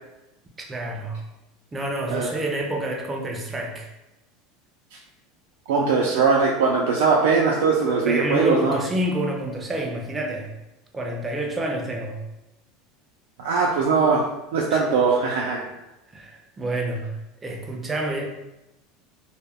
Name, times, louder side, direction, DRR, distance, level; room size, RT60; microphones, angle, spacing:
voice 1, 0.6-1.2 1.7-3.9 8.0-10.5 10.9-12.2 14.7-14.9 16.1-18.3, right 1 dB, 15° right, 1 dB, 0.4 m, -28 dB
voice 2, 5.7-8.8 13.4-14.2 14.5-15.6, right 4 dB, 85° right, -2 dB, 0.3 m, -20 dB
2.2 x 2.0 x 3.4 m, 0.96 s
supercardioid pair, 140°, 0 cm